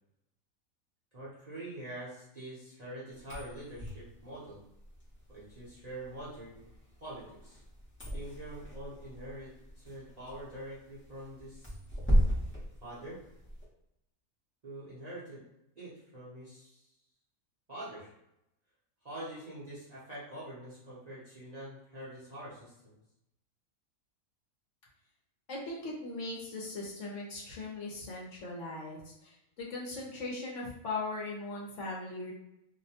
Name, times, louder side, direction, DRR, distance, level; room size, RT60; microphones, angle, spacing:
voice 1, 1.1-4.6 5.3-6.7 7.0-7.6 8.1-11.8 12.8-13.2 14.6-15.4 15.8-16.9 17.7-18.1 19.0-23.0, right 1 dB, 35° right, -9 dB, 0.7 m, -45 dB
sound 1, 3.1-13.6, equal, 15° left, 0.5 m, -35 dB
voice 2, 25.5-32.3, left 2 dB, 65° left, -3 dB, 1.0 m, -39 dB
2.7 x 2.1 x 2.8 m, 0.83 s
omnidirectional pair, 1.5 m